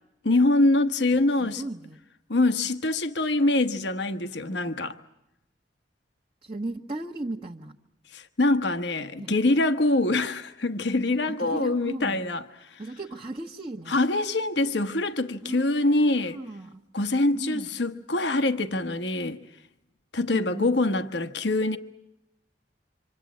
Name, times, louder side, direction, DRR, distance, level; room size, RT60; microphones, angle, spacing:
voice 1, 0.2-1.6 2.3-5.0 8.1-12.8 13.9-16.4 16.9-19.4 20.1-21.8, left 2 dB, 65° left, 1.1 m, -24 dB
voice 2, 1.4-2.0 6.4-7.8 9.2-9.4 11.3-12.2 12.8-14.0 15.4-16.8 17.3-17.8 20.3-20.8, right 2 dB, 30° right, 1.2 m, -36 dB
26.5 x 26.5 x 8.5 m
head